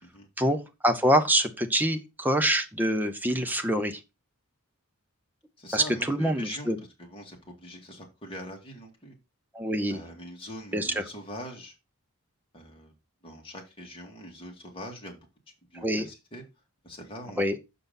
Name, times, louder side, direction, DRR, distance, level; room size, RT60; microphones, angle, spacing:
voice 1, 0.4-4.0 5.7-6.8 9.5-10.0 10.7-10.9 15.8-16.0 17.4-17.6, equal, 10° right, 6 dB, 0.8 m, -25 dB
voice 2, 5.6-9.2 9.9-11.7 12.5-12.9 13.2-15.2 15.5-16.4 16.8-17.4, left 1 dB, 25° left, 0 dB, 2.1 m, -43 dB
6.9 x 5.6 x 4.0 m, 0.25 s
head